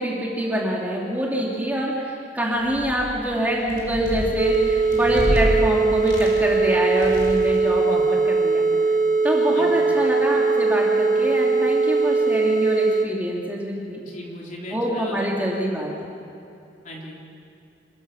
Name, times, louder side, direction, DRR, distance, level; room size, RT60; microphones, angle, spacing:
voice 1, 0.0-8.9 9.2-14.0 14.7-16.1, equal, 10° right, -3 dB, 2.8 m, -25 dB
sound 1, 2.5-3.2 3.6-5.5 6.0-6.6 6.9-7.6, equal, 80° left, 4.8 m, -29 dB
sound 2, 4.4-13.1, right 4 dB, 45° right, 0.8 m, -20 dB
voice 2, 9.5-9.8 14.0-15.3 15.6-15.7 16.8-17.3, left 1 dB, 45° left, -2 dB, 3.6 m, -38 dB
27.0 x 14.5 x 7.3 m, 2.7 s
head